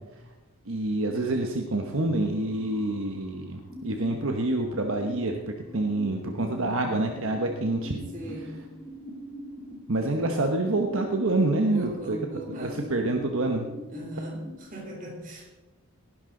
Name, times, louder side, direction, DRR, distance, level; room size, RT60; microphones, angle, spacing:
voice 1, 0.6-8.0 8.4-8.5 9.9-12.2 12.6-13.7, right 2 dB, 65° right, 3 dB, 1.1 m, -27 dB
sound 1, 1.1-14.6, equal, ahead, 5.1 m, -42 dB
voice 2, 6.0-6.9 8.1-8.7 11.7-12.9 13.9-15.5, equal, 35° right, 0 dB, 3.3 m, -39 dB
19.0 x 11.0 x 3.8 m, 1.1 s
head